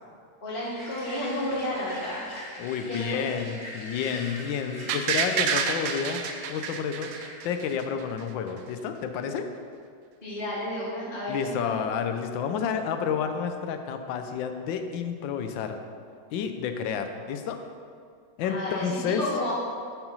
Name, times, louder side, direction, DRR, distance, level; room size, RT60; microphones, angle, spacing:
voice 1, 0.4-2.2 2.9-3.4 10.2-11.7 18.4-19.5, left 1 dB, 30° left, -7 dB, 1.3 m, -32 dB
sound 1, 0.6-7.8, equal, 15° left, 1.7 m, -43 dB
voice 2, 2.6-6.2 6.5-7.1 7.4-9.5 11.3-15.8 16.3-17.6 18.4-19.2, left 7 dB, 75° left, 7 dB, 1.3 m, -30 dB
sound 2, 4.9-7.8 8.2-8.3, right 6 dB, 80° right, 1.4 m, -28 dB
7.6 x 4.5 x 5.4 m, 2.3 s
omnidirectional pair, 2.2 m